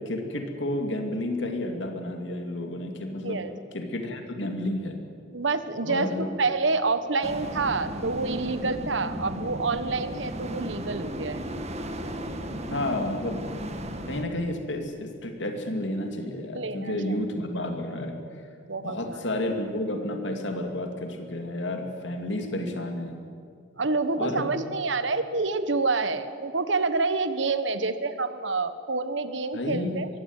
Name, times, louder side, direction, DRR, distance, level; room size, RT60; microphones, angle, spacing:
voice 1, 0.0-3.4 3.7-5.0 5.8-6.3 12.7-13.4 14.1-18.2 18.8-23.3 24.2-24.5 29.5-30.0, left 1 dB, 65° left, 4 dB, 2.7 m, -31 dB
voice 2, 3.2-3.5 5.3-11.4 16.5-17.2 18.7-19.2 23.8-30.1, right 3 dB, 70° right, 11 dB, 1.3 m, -28 dB
sound 1, 7.2-14.2, equal, 35° right, 1.7 m, -35 dB
22.5 x 16.5 x 9.1 m, 2.3 s
head